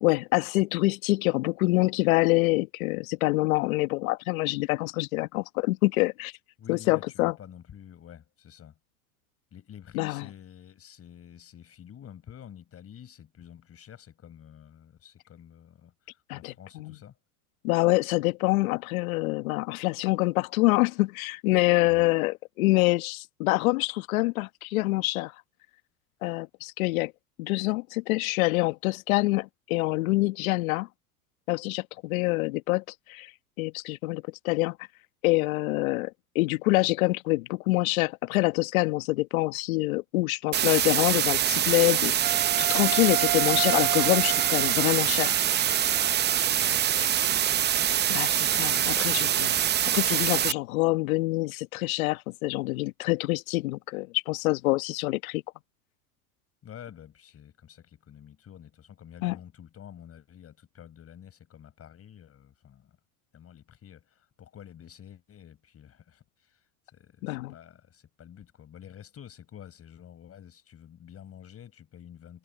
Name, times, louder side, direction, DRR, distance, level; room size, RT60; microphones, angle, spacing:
voice 1, 0.0-6.3 6.7-7.3 9.9-10.2 16.3-16.9 17.6-25.3 26.2-27.1 27.4-30.9 31.5-32.8 33.1-33.3 33.6-34.8 35.2-45.3 48.1-49.5 49.9-55.4 59.2-59.4 67.2-67.5, left 21 dB, 65° left, 1.5 m, -26 dB
voice 2, 6.6-8.8 9.5-17.2 21.9-22.0 46.6-49.8 56.6-63.0 63.3-72.4, left 9 dB, 30° left, 5.3 m, -49 dB
sound 1, 40.5-50.5, right 10 dB, 25° right, 0.7 m, -24 dB
Wind instrument woodwind instrument, 42.2-46.5, right 21 dB, 50° right, 3.0 m, -33 dB
hypercardioid pair, 105°, 44 cm